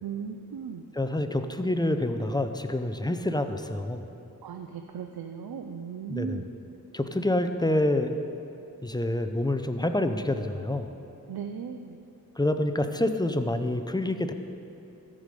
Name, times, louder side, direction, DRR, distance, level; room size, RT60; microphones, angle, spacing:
voice 1, 0.0-0.9 4.4-6.5 11.3-12.0, right 7 dB, 80° right, 5 dB, 0.6 m, -37 dB
voice 2, 0.9-4.1 6.1-6.4 6.9-8.1 8.8-10.9 12.4-14.3, left 1 dB, 10° left, 7 dB, 0.6 m, -27 dB
14.0 x 5.0 x 5.2 m, 3.0 s
cardioid pair, 50°, 37 cm